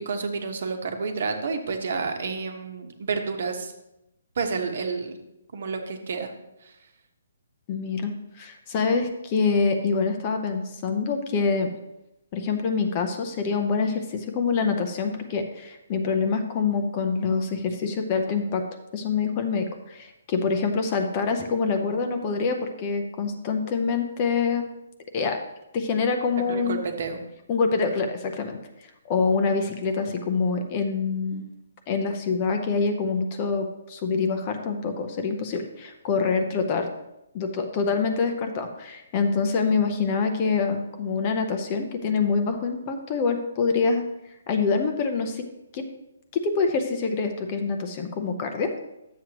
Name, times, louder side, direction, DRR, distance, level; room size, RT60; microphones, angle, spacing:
voice 1, 0.0-3.7 4.4-5.2 5.5-6.3 6.6-6.7 26.4-27.2, right 4 dB, 50° right, 5 dB, 1.2 m, -30 dB
voice 2, 7.7-11.7 12.3-18.7 18.9-24.7 25.1-25.4 25.7-26.8 27.5-28.6 29.1-31.4 31.9-36.9 37.3-44.1 44.5-45.4 45.7-45.8 46.3-48.8, left 4 dB, 20° left, 5 dB, 0.6 m, -25 dB
11.5 x 7.6 x 3.0 m, 0.90 s
hypercardioid pair, 175°, 0 cm